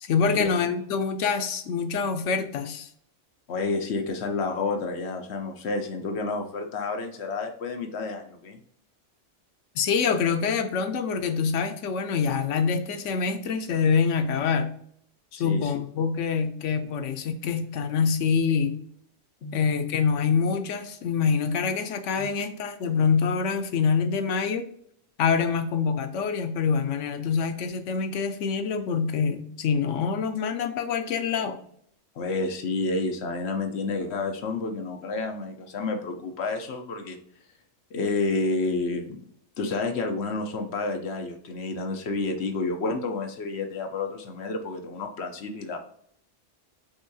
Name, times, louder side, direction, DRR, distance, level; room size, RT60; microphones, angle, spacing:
voice 1, 0.0-2.9 9.8-14.7 15.4-18.8 19.5-24.7 25.2-31.6, left 6 dB, 85° left, 8 dB, 1.0 m, -25 dB
voice 2, 3.5-8.6 15.4-15.7 19.4-19.6 22.2-22.3 32.2-37.2 37.9-39.2 39.6-45.8, left 3 dB, 65° left, 5 dB, 1.0 m, -30 dB
5.4 x 3.5 x 2.7 m, 0.66 s
omnidirectional pair, 1.2 m